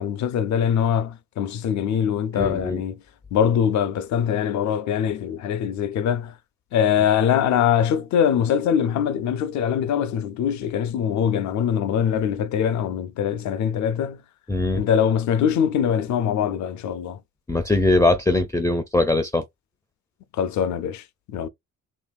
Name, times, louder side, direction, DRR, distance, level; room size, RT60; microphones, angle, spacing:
voice 1, 0.0-3.0 3.3-6.3 6.7-14.2 14.7-17.2 20.3-21.5, left 8 dB, 70° left, 0.5 m, -23 dB
voice 2, 2.3-2.8 14.5-14.8 17.5-19.4, left 2 dB, 10° left, 0.4 m, -21 dB
2.9 x 2.6 x 2.3 m
cardioid pair, 90°, 30 cm